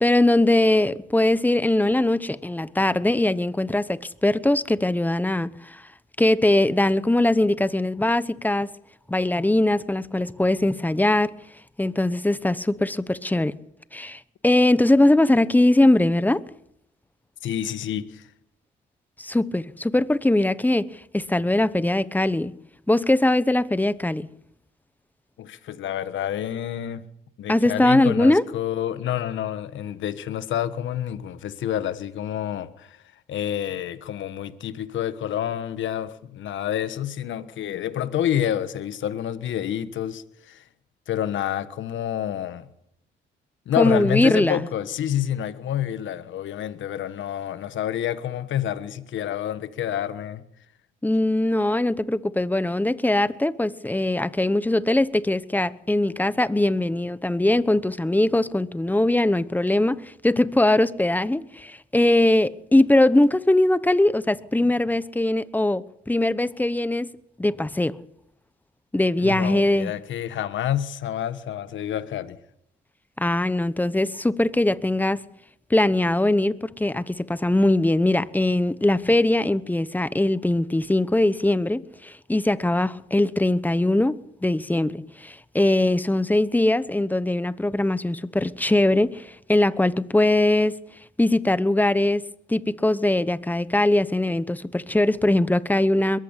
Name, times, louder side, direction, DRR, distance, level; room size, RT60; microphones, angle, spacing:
voice 1, 0.0-5.8 6.2-8.7 9.1-11.3 11.8-13.5 13.9-16.4 19.2-20.9 21.1-22.5 22.9-24.3 27.5-28.4 43.8-44.7 51.0-67.1 67.4-68.0 68.9-69.9 73.2-75.2 75.7-90.8 91.2-92.2 92.5-96.2, left 1 dB, 10° left, 0.9 m, -21 dB
voice 2, 17.4-18.3 25.4-27.0 27.4-33.0 33.3-40.6 41.1-42.7 43.7-50.4 69.2-72.4, left 10 dB, 75° left, 1.5 m, -28 dB
22.0 x 14.5 x 8.3 m
cardioid pair, 90°, 20 cm